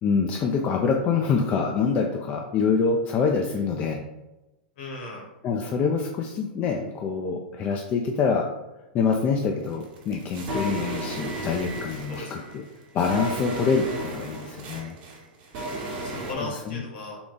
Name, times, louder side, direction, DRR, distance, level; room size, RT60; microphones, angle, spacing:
voice 1, 0.0-4.0 5.4-8.5 8.9-12.6 12.9-15.0 16.7-16.8, left 5 dB, 30° left, 1 dB, 0.4 m, -25 dB
voice 2, 4.8-5.3 12.1-12.4 14.5-14.8 16.0-17.2, left 2 dB, 60° left, 0 dB, 1.4 m, -37 dB
sound 1, 9.7-16.3, right 2 dB, 50° right, 1.1 m, -34 dB
3.8 x 2.3 x 3.8 m, 1.0 s
hypercardioid pair, 120°, 6 cm